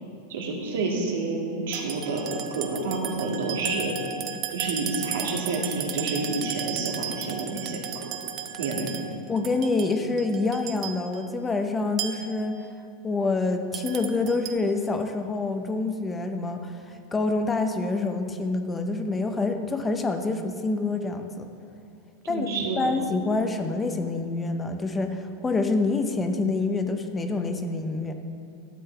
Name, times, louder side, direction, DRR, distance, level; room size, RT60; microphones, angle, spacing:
voice 1, 0.3-4.0 4.5-7.8 8.1-8.2 8.6-9.0 22.3-22.9, right 3 dB, 85° right, 0 dB, 2.0 m, -29 dB
sound 1, 1.7-11.2 12.0-12.5 13.7-14.5, right 8 dB, 35° right, 0.6 m, -35 dB
voice 2, 9.3-12.6 13.0-21.5 22.3-28.1, left 3 dB, 10° left, 6 dB, 0.5 m, -27 dB
12.0 x 7.6 x 4.5 m, 2.5 s
supercardioid pair, 155°, 0 cm